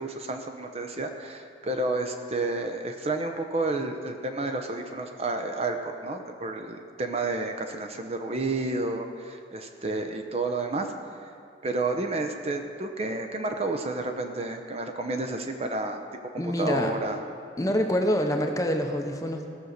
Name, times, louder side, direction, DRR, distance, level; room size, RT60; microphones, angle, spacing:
voice 1, 0.0-10.9 11.2-11.3 11.6-16.0 16.3-17.2, right 2 dB, 35° right, 5 dB, 0.7 m, -30 dB
voice 2, 16.4-16.9 17.6-19.5, equal, 20° left, 4 dB, 0.7 m, -26 dB
16.5 x 6.3 x 6.6 m, 2.5 s
head